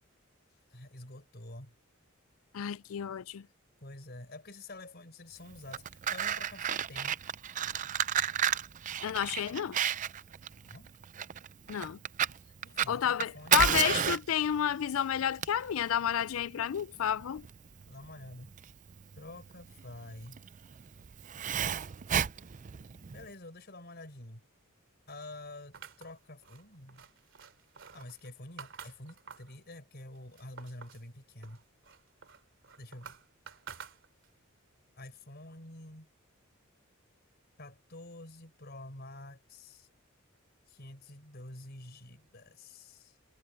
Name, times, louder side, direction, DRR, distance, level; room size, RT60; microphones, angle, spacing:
voice 1, 0.7-1.7 3.8-7.2 10.7-10.9 12.6-13.8 17.9-18.5 19.2-20.4 23.1-24.4 25.1-27.1 27.9-31.6 32.8-33.2 35.0-36.1 37.6-39.9 40.7-43.2, left 1 dB, 50° left, 4.7 m, -48 dB
voice 2, 2.5-3.5 9.0-9.8 11.7-12.0 12.9-17.5, left 9 dB, 80° left, 0.4 m, -31 dB
Fire, 5.5-23.3, right 9 dB, 40° right, 0.4 m, -33 dB
sound 1, 25.7-29.6 30.0-31.1 31.4-34.4, right 6 dB, 65° right, 3.0 m, -50 dB
head